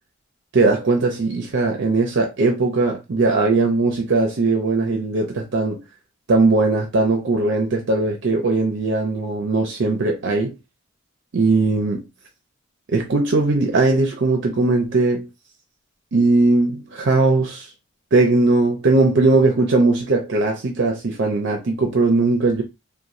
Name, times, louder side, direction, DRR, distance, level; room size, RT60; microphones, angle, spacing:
voice 1, 0.5-5.8 6.3-10.5 11.3-12.0 12.9-15.3 16.1-17.7 18.1-22.6, right 3 dB, 55° right, 0.5 m, -19 dB
2.9 x 2.1 x 2.5 m
head